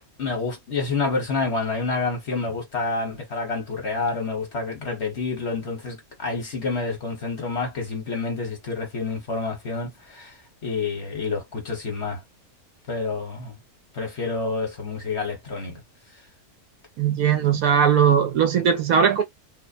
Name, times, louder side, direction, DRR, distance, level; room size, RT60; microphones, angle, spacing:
voice 1, 0.2-10.4 10.6-12.2 12.9-13.6 13.9-15.8, left 3 dB, 50° left, 1.3 m, -28 dB
voice 2, 17.0-19.2, right 7 dB, 70° right, 1.0 m, -19 dB
2.8 x 2.0 x 2.4 m
omnidirectional pair, 1.6 m